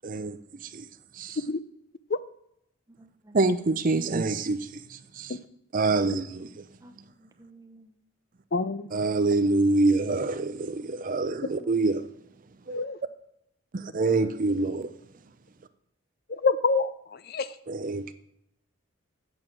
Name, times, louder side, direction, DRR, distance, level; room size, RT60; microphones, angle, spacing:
voice 1, 0.0-0.9 1.1-1.4 3.3-5.4 5.7-6.6 8.9-12.1 12.7-12.8 13.7-14.9 17.7-18.1, right 3 dB, 40° right, 0.5 m, -26 dB
voice 2, 3.0-3.6 6.8-7.9 11.5-11.8, right 1 dB, 15° right, 0.8 m, -52 dB
voice 3, 8.5-8.9 12.7-13.0 16.4-17.5, left 4 dB, 45° left, 0.5 m, -26 dB
8.8 x 7.8 x 6.1 m
head